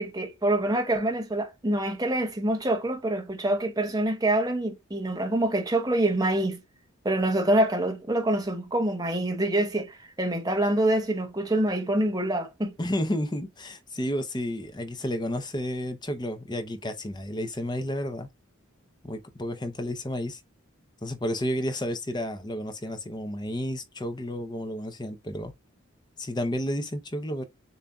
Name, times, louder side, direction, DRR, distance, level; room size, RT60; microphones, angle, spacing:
voice 1, 0.0-6.6 7.0-12.7, right 1 dB, 20° right, 0.9 m, -26 dB
voice 2, 12.8-18.3 19.0-20.4 21.0-25.5 26.2-27.4, equal, 20° left, 0.7 m, -31 dB
6.9 x 2.7 x 2.3 m
head